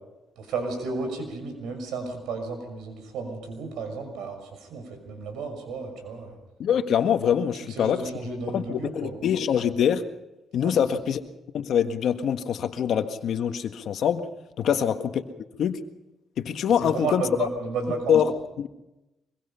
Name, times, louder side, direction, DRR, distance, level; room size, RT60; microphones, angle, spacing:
voice 1, 0.4-6.4 7.7-9.2 10.6-10.8 14.6-14.8 16.8-18.2, right 4 dB, 90° right, 6 dB, 6.1 m, -33 dB
voice 2, 6.6-8.0 8.5-10.0 10.5-11.2 11.5-14.3 14.6-15.2 15.6-15.8 16.4-17.2 18.1-18.3 18.6-18.7, left 8 dB, 70° left, 8 dB, 1.5 m, -24 dB
24.5 x 22.5 x 5.7 m, 0.98 s
cardioid pair, 75°, 0 cm